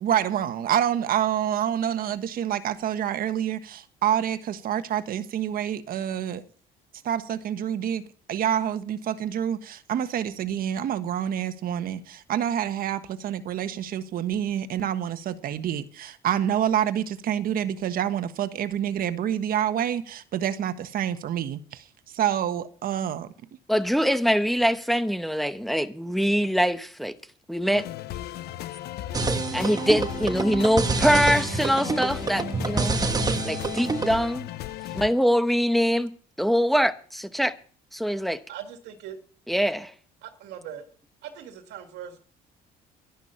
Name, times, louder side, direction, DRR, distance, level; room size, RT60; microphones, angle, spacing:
voice 1, 0.0-6.4 7.0-21.8 22.1-23.3, right 10 dB, 60° right, 1.4 m, -27 dB
voice 2, 23.7-27.1 27.5-27.8 29.5-33.0 33.4-34.5 34.9-37.5 37.9-38.4 39.5-39.9, equal, ahead, 1.0 m, -23 dB
sound 1, 27.7-35.1, left 13 dB, 70° left, 0.8 m, -36 dB
sound 2, 29.1-34.2, right 4 dB, 25° right, 1.3 m, -27 dB
voice 3, 38.5-39.2 40.2-40.9 41.2-42.2, right 9 dB, 85° right, 2.1 m, -40 dB
12.0 x 11.0 x 5.8 m
cardioid pair, 110°, 17 cm